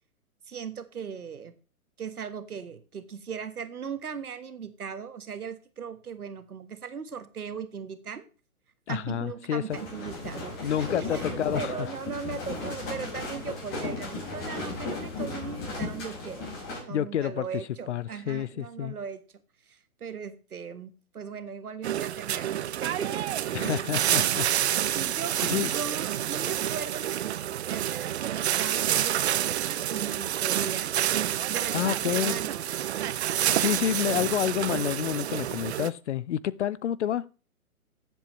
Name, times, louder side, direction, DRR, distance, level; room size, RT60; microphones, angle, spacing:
voice 1, 0.5-1.6 2.0-8.2 8.9-11.3 11.5-19.2 19.7-24.0 24.9-27.1 27.7-30.9 31.5-32.8, right 6 dB, 80° right, 1.5 m, -38 dB
voice 2, 8.9-9.6 10.6-11.7 16.9-17.6 17.9-19.0 23.5-24.8 25.4-25.7 31.7-32.4 33.5-37.2, left 10 dB, 50° left, 0.6 m, -29 dB
sound 1, 9.7-16.8, left 2 dB, 25° left, 5.3 m, -35 dB
sound 2, 21.8-35.9, right 11 dB, 50° right, 0.5 m, -28 dB
14.0 x 7.8 x 3.0 m
figure-of-eight pair, 130°, 44 cm